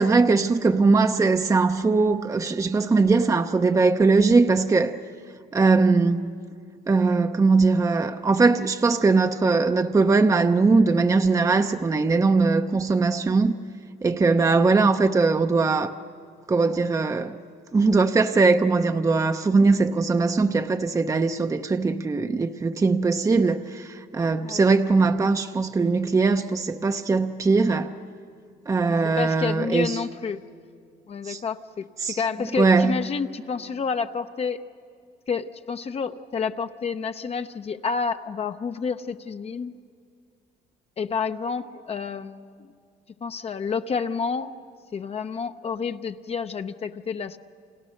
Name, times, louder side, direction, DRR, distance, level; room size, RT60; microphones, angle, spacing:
voice 1, 0.0-5.0 5.5-6.4 6.9-13.6 14.0-15.9 16.5-17.4 17.7-27.9 28.7-30.0 31.2-31.4 32.0-32.2 32.6-33.0, right 4 dB, 20° right, 0.7 m, -20 dB
voice 2, 28.8-30.4 31.1-34.6 35.3-39.7 41.0-42.7 43.2-44.5 44.9-47.4, left 5 dB, 35° left, 0.8 m, -29 dB
29.5 x 27.5 x 6.5 m
cardioid pair, 110°, 17 cm